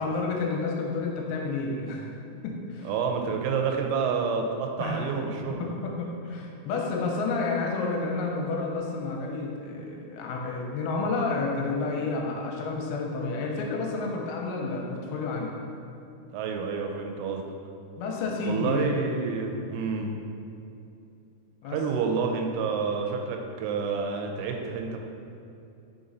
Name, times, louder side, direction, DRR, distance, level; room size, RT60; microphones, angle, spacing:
voice 1, 0.0-2.1 2.4-2.9 4.8-5.1 5.6-15.5 18.0-19.1 21.6-21.8, left 3 dB, 90° left, -1 dB, 3.1 m, -30 dB
voice 2, 2.8-5.8 16.3-17.5 18.5-20.2 21.7-25.0, right 5 dB, 90° right, 3 dB, 3.1 m, -29 dB
6.4 x 4.0 x 3.9 m, 2.7 s
omnidirectional pair, 5.5 m